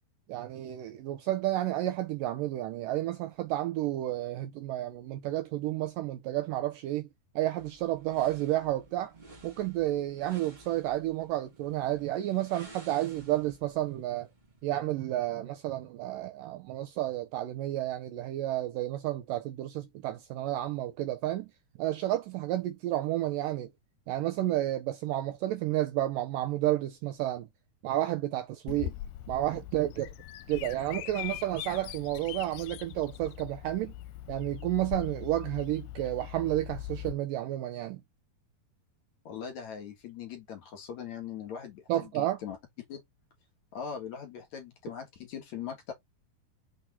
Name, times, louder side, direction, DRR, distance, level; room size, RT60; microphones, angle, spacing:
voice 1, 0.3-7.1 7.4-9.1 9.4-14.3 14.6-21.5 21.8-23.7 24.1-27.5 27.8-28.9 29.3-30.1 30.5-33.9 34.3-38.0 41.9-42.4, right 14 dB, 80° right, 2.0 m, -31 dB
sound 1, 7.5-15.1, right 2 dB, 15° right, 2.2 m, -54 dB
Bird vocalization bird call bird song, 28.7-37.1, left 14 dB, 85° left, 2.5 m, -41 dB
voice 2, 39.3-42.6 42.9-43.0 43.7-45.9, left 7 dB, 50° left, 3.3 m, -41 dB
6.7 x 4.2 x 4.2 m
omnidirectional pair, 4.4 m